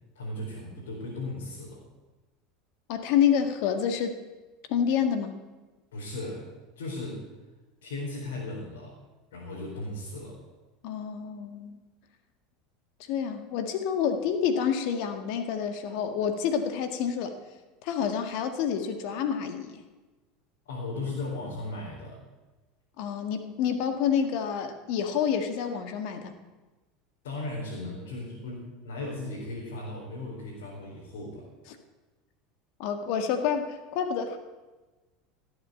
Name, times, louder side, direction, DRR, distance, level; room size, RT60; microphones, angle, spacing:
voice 1, 0.1-1.8 5.9-6.5 6.8-7.3 7.8-9.0 9.3-10.4 20.6-22.2 27.2-31.5, left 2 dB, 80° left, -4 dB, 4.3 m, -36 dB
voice 2, 2.9-4.2 4.7-5.4 10.8-11.8 13.1-17.4 17.8-19.8 23.0-26.3 32.8-34.4, left 7 dB, 65° left, 7 dB, 1.8 m, -28 dB
16.5 x 7.9 x 8.2 m, 1.2 s
hypercardioid pair, 90°, 0 cm